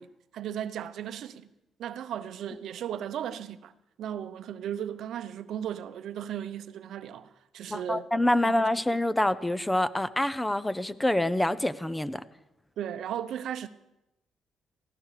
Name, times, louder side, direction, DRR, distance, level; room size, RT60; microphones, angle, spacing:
voice 1, 0.0-1.5 1.8-3.7 4.0-8.1 8.4-8.5 12.8-13.7, right 10 dB, 75° right, 0.7 m, -36 dB
voice 2, 7.7-12.2, left 1 dB, 10° left, 0.6 m, -26 dB
18.0 x 16.0 x 4.9 m
cardioid pair, 90°, 0 cm